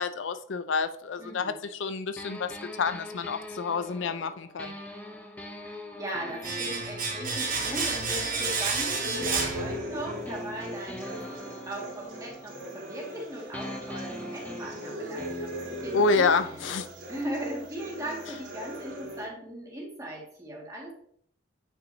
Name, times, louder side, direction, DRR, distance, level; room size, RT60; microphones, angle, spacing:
voice 1, 0.0-2.5 2.8-4.7 15.9-16.9, left 4 dB, 75° left, 10 dB, 0.5 m, -28 dB
voice 2, 1.2-1.6 5.6-16.3 17.1-20.9, right 1 dB, 15° right, -3 dB, 1.9 m, -38 dB
sound 1, 2.2-8.7 9.2-13.2 13.5-19.3, left 1 dB, 10° left, 0.6 m, -42 dB
Domestic sounds home sounds, 6.4-10.3 10.5-10.7, right 4 dB, 45° right, 1.5 m, -30 dB
sound 2, 7.2-19.2, right 1 dB, 85° right, 2.5 m, -41 dB
9.0 x 5.6 x 2.7 m, 0.65 s
head